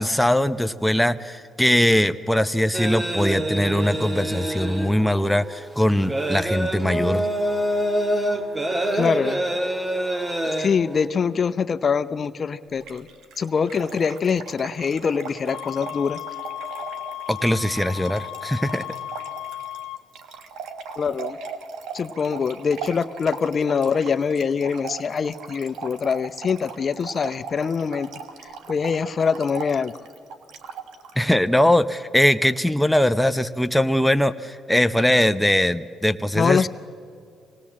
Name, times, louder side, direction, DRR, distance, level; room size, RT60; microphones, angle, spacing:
voice 1, 0.0-7.3 17.3-18.8 31.2-36.7, left 1 dB, 5° left, 9 dB, 0.6 m, -21 dB
sound 1, 2.7-11.1, right 1 dB, 20° right, 1.5 m, -26 dB
voice 2, 8.9-9.4 10.4-13.1 13.4-16.2 21.0-21.4 21.9-28.1 28.7-29.9 36.3-36.7, left 6 dB, 45° left, 12 dB, 0.6 m, -24 dB
Trickle dribble / Fill (with liquid), 12.8-31.2, right 5 dB, 85° right, 1.4 m, -38 dB
sound 2, 15.5-20.0, left 13 dB, 85° left, 0.9 m, -35 dB
25.5 x 19.0 x 7.5 m, 2.4 s
cardioid pair, 90°, 0 cm